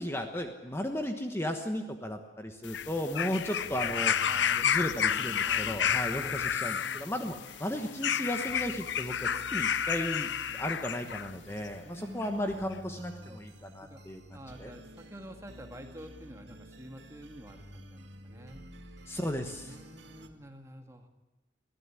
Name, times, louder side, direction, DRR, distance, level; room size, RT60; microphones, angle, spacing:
voice 1, 0.0-4.3 4.6-14.7 19.1-19.7, left 1 dB, 15° left, 5 dB, 1.2 m, -35 dB
sound 1, 2.6-11.3 12.2-12.3, left 8 dB, 85° left, 0.6 m, -31 dB
sound 2, 3.6-20.3, right 1 dB, 80° right, 2.4 m, -51 dB
voice 2, 4.3-5.8 6.1-6.4 11.8-13.4 13.8-14.0 14.3-18.6 19.6-21.1, equal, 15° right, 4 dB, 2.0 m, -47 dB
22.5 x 15.0 x 9.9 m, 1.1 s
head